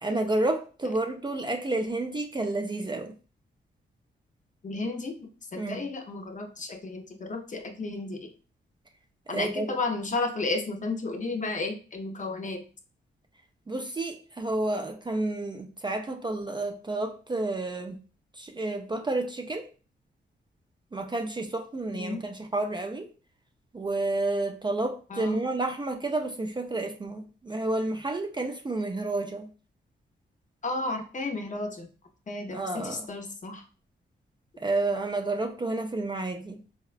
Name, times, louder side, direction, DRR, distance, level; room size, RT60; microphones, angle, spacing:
voice 1, 0.0-3.1 5.6-5.9 9.3-9.8 13.7-18.0 18.3-19.7 20.9-23.1 23.7-29.5 32.5-33.1 34.6-36.6, right 2 dB, 20° right, 4 dB, 0.4 m, -30 dB
voice 2, 4.6-5.2 5.5-8.3 9.3-12.6 21.9-22.2 25.1-25.4 30.6-31.9 32.3-33.6, left 3 dB, 40° left, 4 dB, 0.6 m, -33 dB
3.8 x 2.1 x 2.4 m, 0.37 s
cardioid pair, 70°, 20 cm